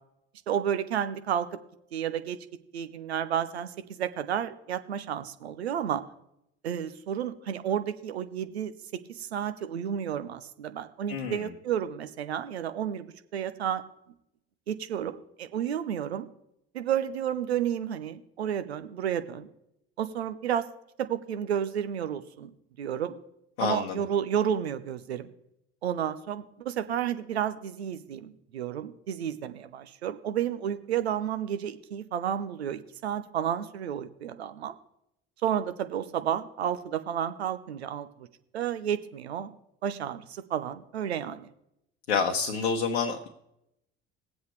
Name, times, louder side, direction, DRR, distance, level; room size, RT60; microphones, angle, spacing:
voice 1, 0.5-1.5 1.9-2.4 2.7-6.0 6.6-8.7 9.1-13.8 14.7-16.3 16.7-19.5 20.0-20.7 21.0-23.2 23.6-25.3 25.8-34.7 35.4-38.3 38.5-39.5 39.8-41.5, right 9 dB, 80° right, 11 dB, 0.6 m, -31 dB
voice 2, 11.1-11.5 23.6-24.0 42.1-43.3, left 5 dB, 70° left, 1 dB, 1.0 m, -28 dB
19.5 x 7.9 x 3.2 m, 0.81 s
figure-of-eight pair, 55°, 32 cm